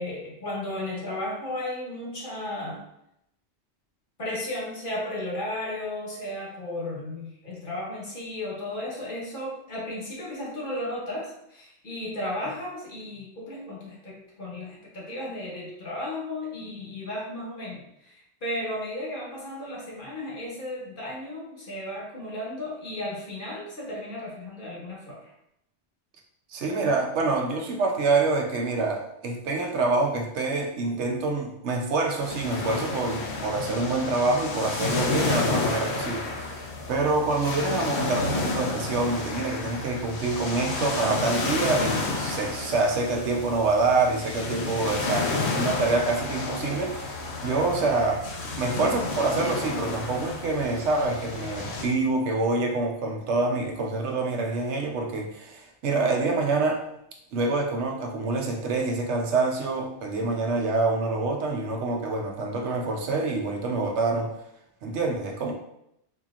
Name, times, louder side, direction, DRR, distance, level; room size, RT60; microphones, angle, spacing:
voice 1, 0.0-2.8 4.2-25.2, left 1 dB, 50° left, -4 dB, 1.2 m, -34 dB
voice 2, 26.5-48.2 48.6-56.8 57.3-64.3 64.8-65.5, right 3 dB, 85° right, 1 dB, 1.0 m, -26 dB
sound 1, 32.2-51.8, left 3 dB, 75° left, 0.9 m, -31 dB
4.7 x 2.9 x 2.4 m, 0.80 s
omnidirectional pair, 1.2 m